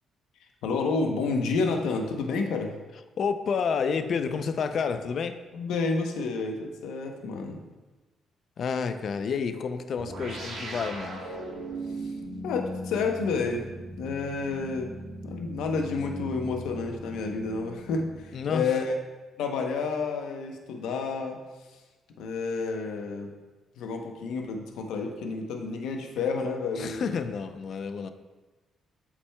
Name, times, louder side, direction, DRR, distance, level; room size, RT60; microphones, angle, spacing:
voice 1, 0.4-2.7 5.5-7.6 12.0-12.1 12.4-13.7 14.0-14.9 15.2-19.0 19.4-21.4 21.7-21.8 22.2-23.3 23.8-27.2, left 4 dB, 85° left, 3 dB, 0.8 m, -30 dB
voice 2, 3.2-5.4 8.6-11.2 18.3-18.8 26.8-28.1, left 6 dB, 55° left, 9 dB, 0.5 m, -29 dB
sound 1, 10.0-18.8, right 1 dB, 75° right, 1.9 m, -39 dB
8.0 x 5.9 x 2.3 m, 1.2 s
cardioid pair, 90°, 0 cm